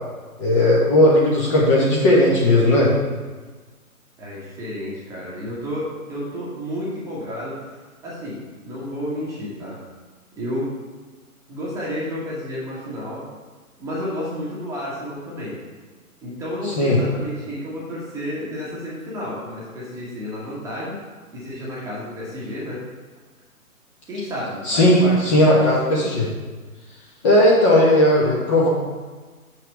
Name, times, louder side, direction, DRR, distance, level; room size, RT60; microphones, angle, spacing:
voice 1, 0.4-2.9 16.8-17.0 24.6-26.3 27.2-28.7, left 1 dB, 20° left, -5 dB, 1.1 m, -16 dB
voice 2, 4.2-7.7 8.0-9.8 10.4-10.7 11.5-13.2 13.8-15.6 16.2-21.0 21.3-22.8 24.1-25.6, equal, 5° right, -7 dB, 1.3 m, -31 dB
6.7 x 5.9 x 4.5 m, 1.4 s
figure-of-eight pair, 140°, 44 cm